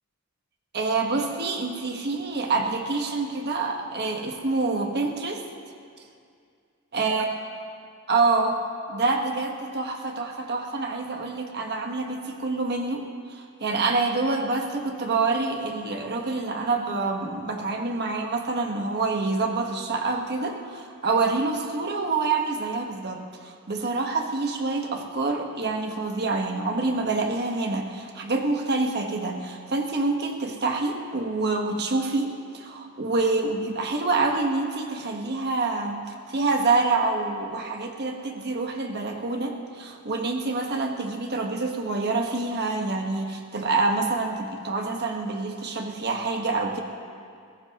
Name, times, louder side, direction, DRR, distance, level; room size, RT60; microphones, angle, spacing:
voice 1, 0.7-5.4 6.9-7.3 8.1-8.6 8.9-13.0 13.3-36.0 36.3-46.8, right 3 dB, 50° right, 3 dB, 1.3 m, -26 dB
22.0 x 17.0 x 2.9 m, 2.3 s
head